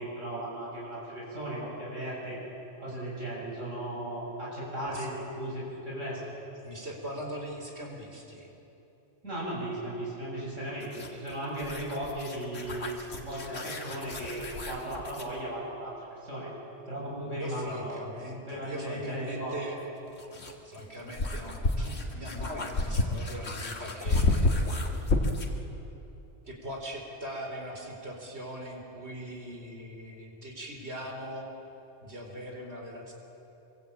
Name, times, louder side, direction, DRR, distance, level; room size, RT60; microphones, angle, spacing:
voice 1, 0.0-2.4 2.8-6.2 9.2-16.5 16.9-18.0 18.5-19.5, right 1 dB, 90° right, -6 dB, 8.0 m, -36 dB
voice 2, 6.6-8.5 17.4-19.8 20.6-25.0 26.4-31.5 32.0-33.1, equal, 60° right, 1 dB, 4.4 m, -40 dB
sound 1, 10.8-15.3 17.7-17.8 19.8-25.6, left 2 dB, 75° left, 2.3 m, -31 dB
25.5 x 23.0 x 8.6 m, 3.0 s
omnidirectional pair, 1.3 m